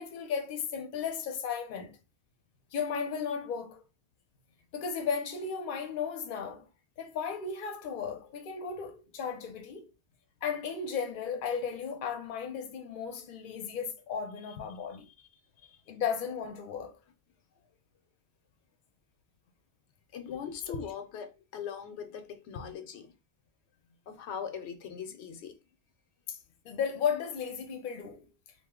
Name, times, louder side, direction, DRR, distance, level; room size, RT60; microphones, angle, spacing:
voice 1, 0.0-1.9 2.7-3.8 4.7-6.6 7.0-9.9 10.4-15.1 15.9-16.9 20.7-20.8 26.3-26.4 26.6-28.3, left 6 dB, 55° left, 0.7 m, -35 dB
voice 2, 14.9-15.3 15.6-15.8 20.1-23.1 24.1-25.6, left 7 dB, 85° left, 0.9 m, -41 dB
2.6 x 2.0 x 3.5 m
omnidirectional pair, 1.1 m